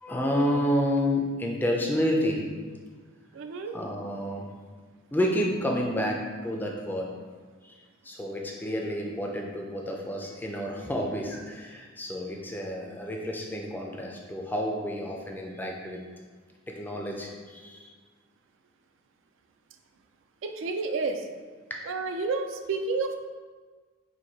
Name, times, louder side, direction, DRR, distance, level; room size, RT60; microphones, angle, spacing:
voice 1, 0.0-2.5 3.7-4.5 5.1-7.1 7.6-7.7 8.0-16.0 16.7-17.9 21.7-21.8, equal, 10° left, 0 dB, 0.4 m, -30 dB
voice 2, 3.3-3.8 20.4-21.3 21.8-23.3, right 3 dB, 65° right, 6 dB, 0.3 m, -30 dB
4.6 x 2.2 x 3.9 m, 1.5 s
head